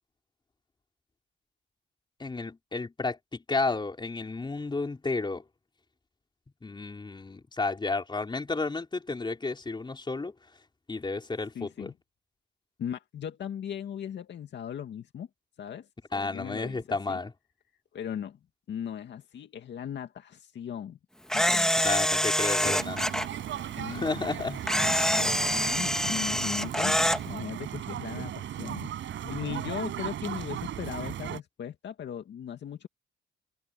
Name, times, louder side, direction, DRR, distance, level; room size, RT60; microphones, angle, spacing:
voice 1, 2.2-5.4 6.6-10.3 10.9-11.9 16.1-17.3 21.8-23.1 23.9-24.9, left 3 dB, 25° left, 4.3 m, -32 dB
voice 2, 11.5-11.9 12.8-15.3 15.6-17.2 17.9-18.4 18.7-21.0 21.3-21.7 23.7-24.3 24.6-28.9 29.2-32.9, left 9 dB, 65° left, 2.2 m, -38 dB
Camera, 21.3-23.3 24.7-27.2, equal, 5° left, 1.7 m, -26 dB
sound 1, 22.6-31.4, right 11 dB, 70° right, 7.6 m, -36 dB
cardioid pair, 90°, 20 cm